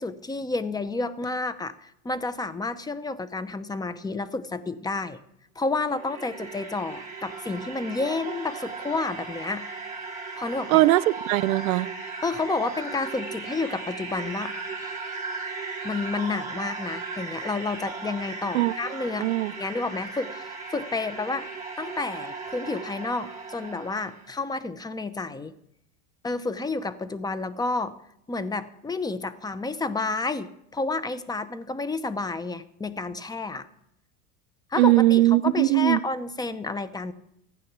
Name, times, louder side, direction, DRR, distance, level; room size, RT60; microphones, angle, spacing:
voice 1, 0.0-5.2 5.6-9.6 10.3-10.9 12.2-14.5 15.8-21.5 21.8-25.5 26.2-27.9 28.3-33.7 34.7-37.1, left 3 dB, 10° left, 0.7 m, -30 dB
sound 1, 5.6-24.3, right 4 dB, 10° right, 3.5 m, -37 dB
voice 2, 10.7-11.9 18.5-18.7 19.2-19.5 34.8-36.0, right 17 dB, 90° right, 0.6 m, -20 dB
15.5 x 9.1 x 6.0 m
supercardioid pair, 125°, 41 cm